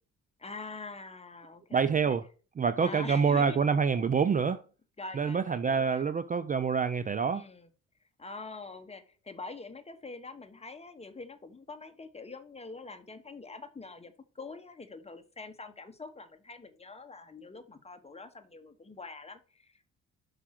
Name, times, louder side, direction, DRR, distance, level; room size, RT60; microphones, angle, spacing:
voice 1, 0.4-2.1 2.8-3.6 5.0-6.0 7.3-7.7 8.2-19.8, left 3 dB, 20° left, 1.2 m, -45 dB
voice 2, 1.7-2.3 2.6-4.6 5.1-7.4, right 6 dB, 25° right, 0.4 m, -27 dB
5.8 x 4.9 x 5.8 m
cardioid pair, 90°, 30 cm